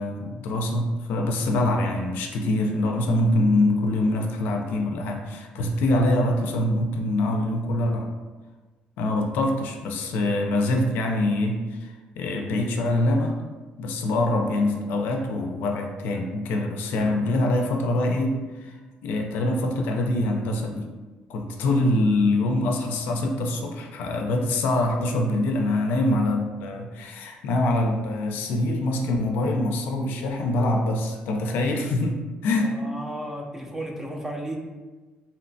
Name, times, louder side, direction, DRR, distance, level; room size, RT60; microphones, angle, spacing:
voice 1, 0.0-8.1 9.0-13.4 13.8-18.7 19.0-20.9 21.3-32.8, left 1 dB, 80° left, 3 dB, 0.4 m, -24 dB
voice 2, 32.6-34.6, right 1 dB, 15° right, 1 dB, 0.4 m, -34 dB
2.8 x 2.1 x 2.6 m, 1.3 s
cardioid pair, 105°, 3 cm